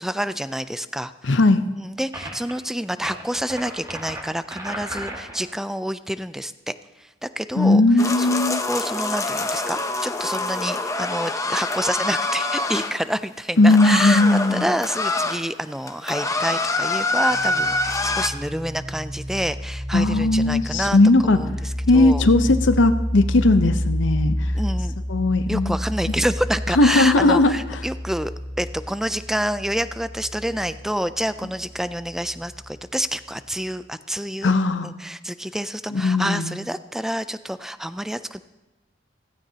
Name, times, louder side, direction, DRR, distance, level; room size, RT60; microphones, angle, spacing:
voice 1, 0.0-1.4 1.8-6.7 7.2-14.2 14.5-21.0 21.3-22.2 24.5-25.0 25.5-28.3 28.6-34.5 34.8-38.4, equal, ahead, 13 dB, 0.3 m, -28 dB
voice 2, 1.2-1.6 7.6-8.6 13.6-14.7 19.9-21.4 21.9-24.5 25.1-25.8 26.1-26.2 26.8-27.5 34.4-34.9 35.9-36.6, left 2 dB, 75° left, 10 dB, 0.8 m, -17 dB
sound 1, 2.1-2.5 3.0-5.5, right 1 dB, 20° right, 1.7 m, -35 dB
sound 2, 8.0-12.9 13.7-15.4 15.8-18.3, left 2 dB, 15° left, 0.7 m, -25 dB
sound 3, 17.3-32.7, equal, 50° right, 3.4 m, -30 dB
16.0 x 15.5 x 2.8 m, 1.0 s
head